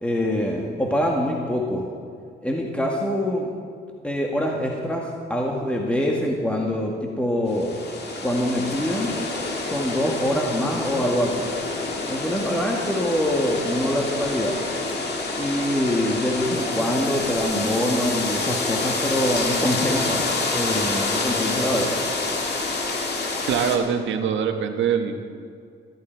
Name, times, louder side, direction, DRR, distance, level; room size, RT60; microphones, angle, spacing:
voice 1, 0.0-1.8 2.4-3.5 4.0-7.8 8.2-9.1 9.7-11.5 12.1-14.5 15.3-20.2 20.5-22.0, equal, 5° left, -1 dB, 1.7 m, -24 dB
sound 1, 7.5-23.8, left 3 dB, 55° left, 2.2 m, -27 dB
voice 2, 23.5-25.4, right 7 dB, 75° right, 6 dB, 1.3 m, -24 dB
14.5 x 13.5 x 4.6 m, 2.3 s
cardioid pair, 90°, 20 cm